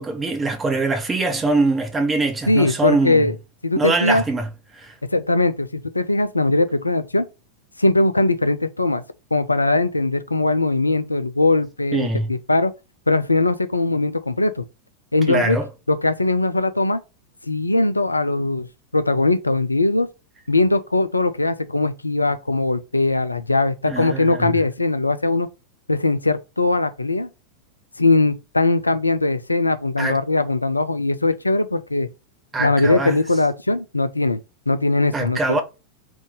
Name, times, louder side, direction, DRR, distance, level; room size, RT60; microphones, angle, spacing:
voice 1, 0.0-3.3 3.8-4.9 11.9-12.3 15.3-15.7 23.9-24.6 30.0-30.2 32.5-33.2 35.1-35.6, right 2 dB, 15° right, 0.9 m, -23 dB
voice 2, 2.5-3.3 3.6-4.2 5.1-7.3 7.8-9.0 9.3-12.7 13.1-14.6 15.1-15.6 15.9-17.0 17.5-18.7 18.9-20.1 20.5-25.5 25.9-27.3 28.0-32.1 32.6-34.4 34.7-35.6, left 2 dB, 80° left, 0.3 m, -20 dB
3.7 x 2.6 x 3.6 m
figure-of-eight pair, 90°, 0 cm